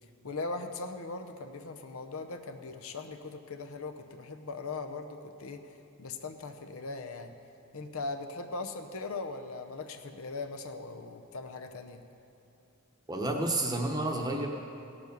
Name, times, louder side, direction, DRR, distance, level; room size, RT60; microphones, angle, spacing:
voice 1, 0.2-5.7 6.0-7.4 7.7-12.0, left 3 dB, 65° left, 6 dB, 0.7 m, -39 dB
voice 2, 13.1-14.5, right 2 dB, 15° right, 2 dB, 0.9 m, -30 dB
17.0 x 7.0 x 5.3 m, 2.8 s
head